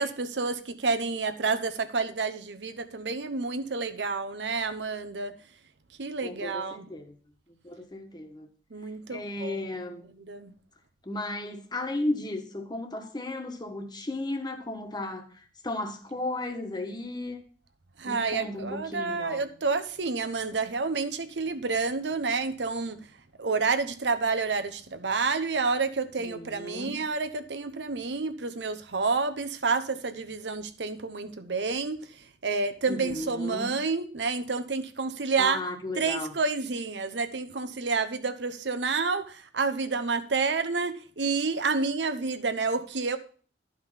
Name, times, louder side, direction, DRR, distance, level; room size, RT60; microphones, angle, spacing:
voice 1, 0.0-5.3 6.0-6.8 8.7-9.6 10.1-10.5 18.0-23.0 23.4-32.1 32.4-35.6 36.0-43.2, right 4 dB, 80° right, 0.9 m, -29 dB
voice 2, 6.2-7.1 7.5-8.5 9.1-10.1 11.0-17.4 18.0-19.5 26.2-27.0 32.9-33.7 35.4-36.3, left 2 dB, 25° left, 1.4 m, -35 dB
12.0 x 5.1 x 5.7 m
head